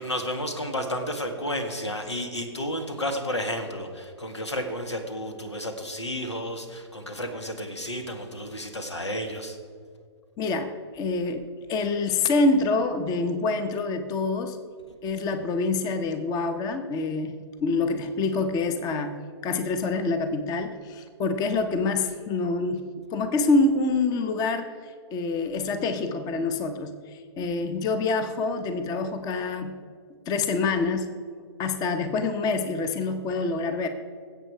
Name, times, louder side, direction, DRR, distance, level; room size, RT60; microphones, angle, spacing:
voice 1, 0.0-9.6, equal, 90° left, 6 dB, 1.9 m, -32 dB
voice 2, 10.4-14.6 15.0-29.8 30.3-31.1 31.6-33.9, left 3 dB, 25° left, 9 dB, 1.0 m, -26 dB
20.0 x 8.1 x 4.6 m, 2.1 s
hypercardioid pair, 120°, 14 cm